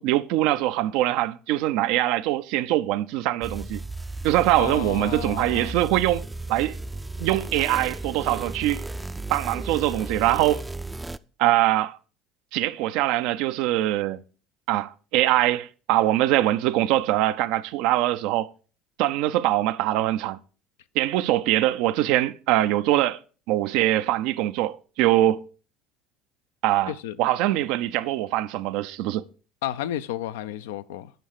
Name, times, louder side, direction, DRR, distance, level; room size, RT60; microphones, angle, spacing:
voice 1, 0.0-3.8 4.2-6.2 6.5-6.8 7.2-8.8 9.3-10.6 11.4-12.0 12.5-14.2 14.7-18.5 19.0-20.4 21.0-23.2 23.5-25.4 26.6-26.9 27.2-29.2, right 14 dB, 70° right, 0.4 m, -23 dB
sound 1, 3.4-11.2, right 2 dB, 10° right, 0.4 m, -35 dB
voice 2, 4.5-5.7 26.9-27.2 29.6-31.1, left 12 dB, 80° left, 0.4 m, -32 dB
9.0 x 5.5 x 4.9 m
hypercardioid pair, 75°, 0 cm